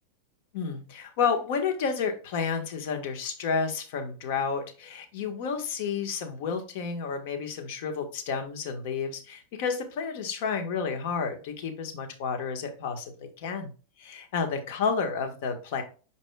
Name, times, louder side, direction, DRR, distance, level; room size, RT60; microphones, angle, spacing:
voice 1, 0.5-13.7 14.0-15.8, left 5 dB, 60° left, 6 dB, 1.7 m, -31 dB
8.7 x 5.2 x 2.4 m, 0.36 s
supercardioid pair, 145°, 0 cm